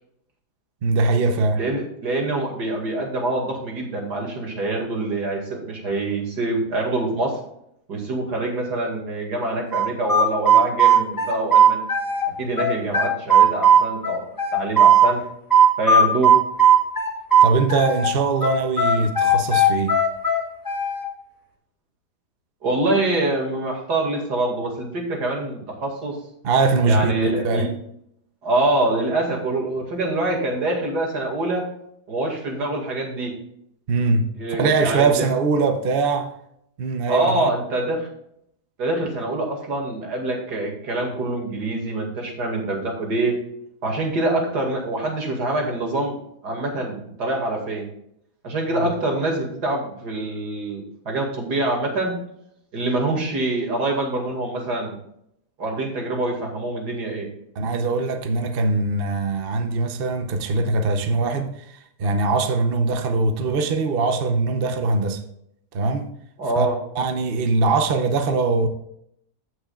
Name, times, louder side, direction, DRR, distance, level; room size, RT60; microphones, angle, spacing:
voice 1, 0.8-1.7 17.4-20.0 26.4-27.7 33.9-36.3 36.8-37.5 48.8-48.9 57.5-65.2 65.7-66.1 66.5-66.7 66.9-68.7, right 3 dB, 45° right, 0.8 m, -22 dB
voice 2, 1.5-7.4 7.9-11.9 12.4-15.2 15.8-16.3 22.6-26.2 26.9-27.7 28.4-31.6 32.1-33.3 34.4-35.3 37.1-38.1 38.8-43.4 43.8-46.2 46.4-47.9 48.4-52.1 52.7-55.0 55.6-57.3 66.4-66.8, right 2 dB, 75° right, 2.7 m, -25 dB
sound 1, 9.7-12.3 12.6-15.1 15.5-18.1 18.4-21.0, right 4 dB, 15° left, 1.4 m, -16 dB
15.0 x 6.3 x 2.4 m
omnidirectional pair, 1.8 m